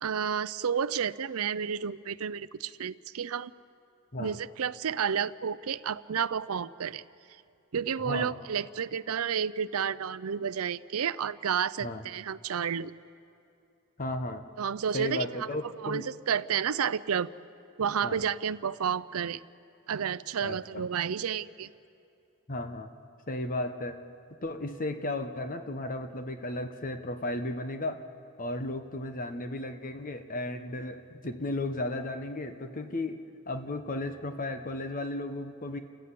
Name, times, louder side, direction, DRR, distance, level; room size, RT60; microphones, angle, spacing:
voice 1, 0.0-3.5 4.2-7.0 7.7-12.9 14.6-15.5 15.8-17.3 17.8-19.4 19.9-21.7, right 7 dB, 70° right, 17 dB, 0.5 m, -31 dB
voice 2, 8.0-8.3 11.8-12.0 14.0-14.4 14.9-16.1 18.0-18.2 20.4-20.9 22.5-22.9 23.3-24.0 24.4-28.0 28.4-35.8, left 2 dB, 40° left, 8 dB, 1.1 m, -34 dB
29.5 x 15.5 x 8.4 m, 2.6 s
head